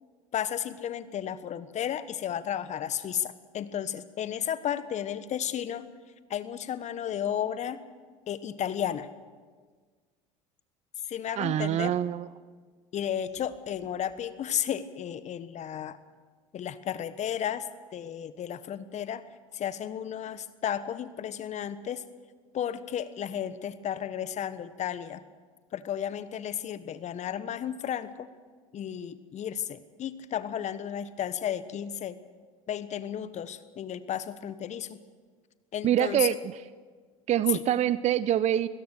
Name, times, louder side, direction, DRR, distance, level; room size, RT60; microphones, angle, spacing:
voice 1, 0.3-5.9 6.3-7.8 8.3-9.1 11.1-11.9 12.9-16.0 16.5-17.7 17.9-19.2 19.5-22.0 22.5-25.2 25.7-28.3 28.7-32.2 32.7-35.0 35.7-36.3 37.5-37.6, left 9 dB, 45° left, 14 dB, 1.3 m, -33 dB
voice 2, 11.4-12.3 35.8-36.6 37.3-38.7, right 11 dB, 45° right, 17 dB, 0.6 m, -25 dB
25.0 x 17.0 x 6.6 m, 1.5 s
hypercardioid pair, 70°, 17 cm